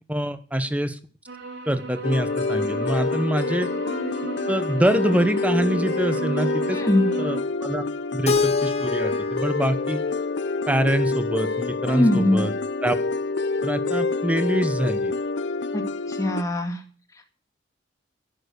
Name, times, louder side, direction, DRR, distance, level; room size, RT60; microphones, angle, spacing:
voice 1, 0.1-1.0 1.7-3.7 4.5-6.8 7.2-7.8 8.1-10.0 10.7-12.5 12.8-13.0 13.6-15.1, equal, 5° right, 10 dB, 0.9 m, -25 dB
sound 1, 1.3-7.4, right 4 dB, 80° right, 2.5 m, -35 dB
sound 2, 2.0-16.4, left 3 dB, 65° left, 0.7 m, -27 dB
voice 2, 6.7-7.1 11.9-12.4 15.7-15.8 16.1-16.8, left 1 dB, 15° left, 3 dB, 2.0 m, -21 dB
Keyboard (musical), 8.3-11.2, left 4 dB, 35° left, 1.0 m, -28 dB
11.5 x 10.5 x 6.5 m, 0.41 s
head